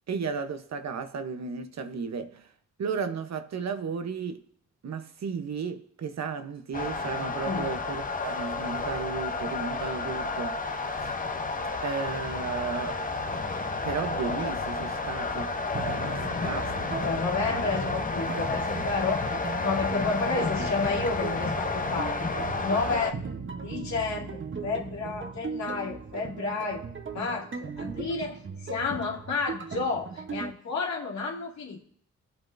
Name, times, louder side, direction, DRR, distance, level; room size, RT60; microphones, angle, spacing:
voice 1, 0.1-2.5 2.8-4.4 4.8-11.1 11.8-13.1 13.8-15.6 16.1-16.7 20.4-20.5, right 5 dB, 65° right, 1.0 m, -34 dB
sound 1, 6.7-23.1, left 3 dB, 30° left, 0.9 m, -31 dB
sound 2, 15.7-30.5, right 5 dB, 40° right, 1.1 m, -38 dB
voice 2, 17.0-19.3 19.6-22.2 22.6-23.2 23.6-26.8 27.1-31.8, left 4 dB, 70° left, 2.3 m, -31 dB
22.5 x 8.2 x 2.7 m
cardioid pair, 70°, 29 cm